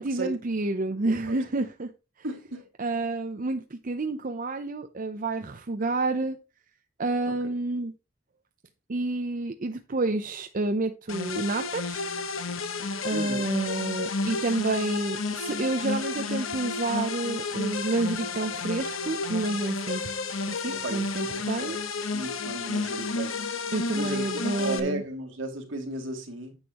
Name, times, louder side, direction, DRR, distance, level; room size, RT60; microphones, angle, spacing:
voice 1, 0.0-1.9 2.8-6.4 7.0-7.9 8.9-12.1 13.0-20.1 20.5-21.8 23.7-25.0, right 2 dB, 45° right, 0.6 m, -29 dB
voice 2, 2.2-2.7 7.3-7.4 13.1-13.5 20.7-21.8 22.1-23.4 23.9-24.2 24.6-26.6, right 2 dB, 70° right, 2.6 m, -35 dB
sound 1, 11.1-24.8, left 4 dB, 85° left, 1.2 m, -31 dB
9.7 x 8.0 x 3.0 m
head